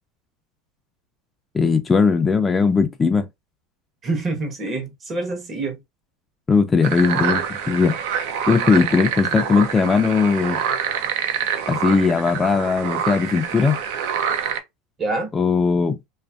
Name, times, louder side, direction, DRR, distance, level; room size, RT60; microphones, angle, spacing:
voice 1, 1.5-3.2 6.5-8.0 8.5-10.6 11.7-13.8 15.3-16.0, left 5 dB, 20° left, 0.3 m, -18 dB
voice 2, 4.0-5.8 15.0-15.3, right 3 dB, 30° right, 0.8 m, -26 dB
sound 1, 6.8-14.6, right 8 dB, 70° right, 0.5 m, -26 dB
2.5 x 2.4 x 2.3 m
supercardioid pair, 120°, 0 cm